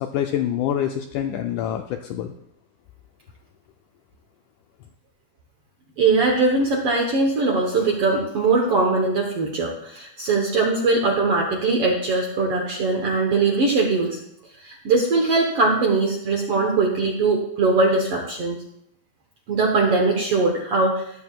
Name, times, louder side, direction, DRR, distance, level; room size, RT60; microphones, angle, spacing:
voice 1, 0.0-2.3, left 10 dB, 85° left, 5 dB, 1.8 m, -26 dB
voice 2, 6.0-14.2 14.6-18.6 19.5-21.0, right 3 dB, 65° right, 0 dB, 1.5 m, -21 dB
13.5 x 12.0 x 2.3 m, 0.75 s
omnidirectional pair, 4.1 m